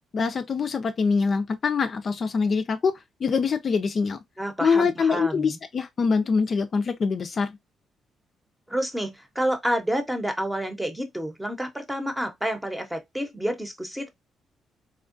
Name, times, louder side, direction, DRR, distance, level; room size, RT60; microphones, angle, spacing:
voice 1, 0.1-2.9 3.2-4.2 4.6-7.6, left 5 dB, 45° left, 0.4 m, -24 dB
voice 2, 4.4-5.6 8.7-14.1, equal, 10° right, 0.8 m, -29 dB
3.5 x 2.2 x 2.5 m
cardioid pair, 90°, 0 cm